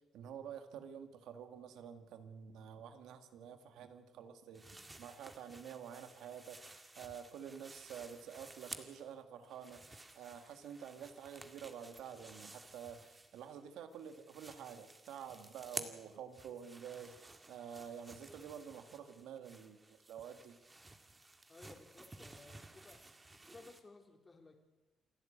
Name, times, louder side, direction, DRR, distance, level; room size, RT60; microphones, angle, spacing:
voice 1, 0.1-6.6 7.0-20.6, right 8 dB, 85° right, 8 dB, 2.0 m, -49 dB
sound 1, 4.5-9.1 9.4-13.6 13.9-23.8, right 2 dB, 20° right, 2.0 m, -53 dB
voice 2, 21.5-23.0 23.4-24.6, left 3 dB, 25° left, 3 dB, 3.8 m, -58 dB
28.0 x 12.0 x 8.9 m, 1.1 s
cardioid pair, 90°, 0 cm